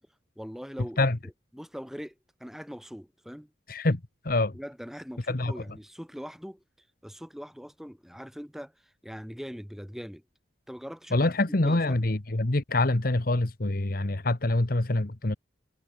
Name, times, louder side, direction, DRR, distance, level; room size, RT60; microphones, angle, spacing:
voice 1, 0.4-3.5 4.5-6.6 7.0-10.2 10.7-12.0, equal, ahead, 7.4 m, -42 dB
voice 2, 3.7-4.0 4.2-4.5 5.3-5.5 11.1-15.4, left 2 dB, 50° left, 1.3 m, -25 dB
head